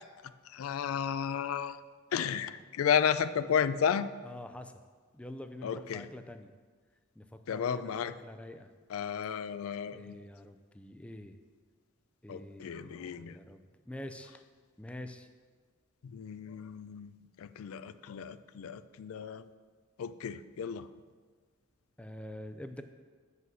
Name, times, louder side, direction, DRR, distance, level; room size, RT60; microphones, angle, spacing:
voice 1, 0.2-1.8 2.1-4.1 5.6-6.1 7.5-8.1 8.9-10.1 12.3-13.4 16.0-19.4 20.0-20.9, left 7 dB, 90° left, 14 dB, 0.4 m, -33 dB
voice 2, 4.2-4.8 5.1-6.5 7.2-8.7 9.8-11.4 12.2-14.4 14.8-15.3 22.0-22.8, left 1 dB, 5° left, 8 dB, 0.4 m, -46 dB
7.7 x 5.6 x 6.2 m, 1.5 s
head